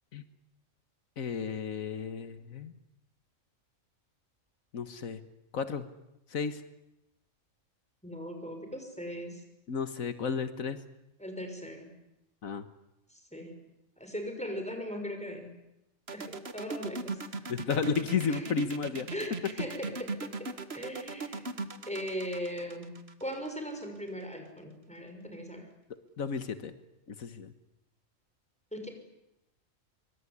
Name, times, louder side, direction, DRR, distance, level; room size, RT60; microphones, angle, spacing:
voice 1, 1.2-2.7 4.7-5.2 5.5-5.9 6.3-6.6 9.7-10.8 12.4-12.7 17.5-19.1 26.2-26.7 27.2-27.5, left 5 dB, 85° left, 10 dB, 1.8 m, -32 dB
voice 2, 8.0-9.4 11.2-11.9 13.1-13.6 14.0-15.5 16.1-17.2 18.3-18.5 19.1-21.5 21.9-25.7 28.7-28.9, equal, 5° left, 5 dB, 6.0 m, -39 dB
sound 1, 16.1-23.8, right 3 dB, 50° right, 1.9 m, -38 dB
24.5 x 24.5 x 10.0 m, 0.89 s
omnidirectional pair, 1.4 m